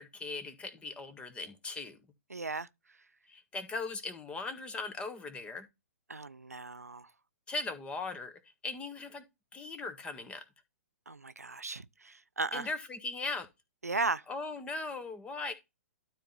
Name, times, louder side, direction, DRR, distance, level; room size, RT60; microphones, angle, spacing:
voice 1, 0.0-2.0 3.3-5.7 7.5-8.3 8.6-9.2 9.5-10.4 12.5-13.5 14.3-15.5, left 3 dB, 15° left, 1.5 m, -39 dB
voice 2, 2.3-2.7 6.1-7.1 11.1-12.7 13.8-14.2, right 3 dB, 85° right, 0.6 m, -36 dB
12.0 x 4.4 x 4.0 m
figure-of-eight pair, 120°, 8 cm